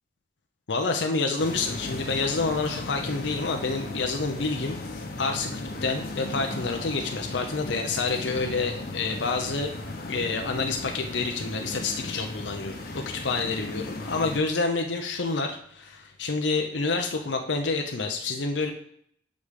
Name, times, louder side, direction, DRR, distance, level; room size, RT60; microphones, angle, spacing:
voice 1, 0.7-9.7 10.1-18.7, left 3 dB, 85° left, 4 dB, 0.7 m, -28 dB
sound 1, 1.4-14.4, left 2 dB, 55° left, 1.0 m, -36 dB
5.4 x 5.1 x 6.5 m, 0.66 s
head